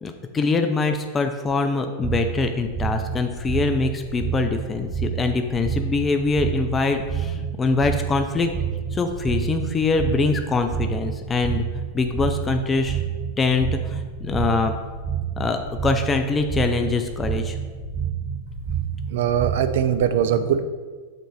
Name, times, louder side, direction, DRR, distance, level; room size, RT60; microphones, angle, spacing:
voice 1, 0.0-8.5 8.9-11.6 11.9-13.0 13.4-14.7 15.4-17.6, left 4 dB, 20° left, 6 dB, 0.4 m, -23 dB
sound 1, 2.0-20.1, right 7 dB, 35° right, 1.0 m, -29 dB
voice 2, 19.1-20.6, right 9 dB, 55° right, 10 dB, 0.4 m, -21 dB
6.6 x 3.9 x 4.7 m, 1.5 s
figure-of-eight pair, 90°, 0 cm